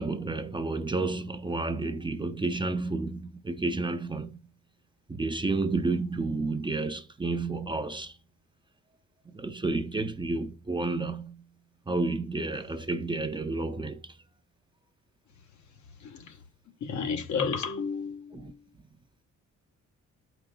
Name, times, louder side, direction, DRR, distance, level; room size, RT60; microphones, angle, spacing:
voice 1, 0.0-4.4 5.1-8.1 9.3-11.4 11.9-14.1 18.3-18.5, right 3 dB, 15° right, 0.5 m, -31 dB
voice 2, 16.0-16.4 16.8-18.6, left 6 dB, 70° left, 1.1 m, -32 dB
12.5 x 5.0 x 2.3 m
cardioid pair, 90°, 30 cm